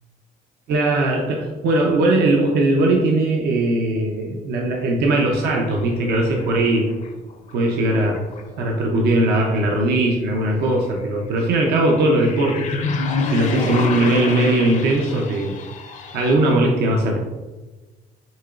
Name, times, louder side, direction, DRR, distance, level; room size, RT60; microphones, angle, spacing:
voice 1, 0.7-6.9 7.5-8.2 8.6-15.6 16.1-17.2, right 2 dB, 75° right, 0 dB, 0.7 m, -19 dB
sound 1, 5.8-7.5 7.9-8.8 11.8-16.3, left 4 dB, 45° left, 0.6 m, -28 dB
7.2 x 2.9 x 2.5 m, 1.2 s
cardioid pair, 110°, 17 cm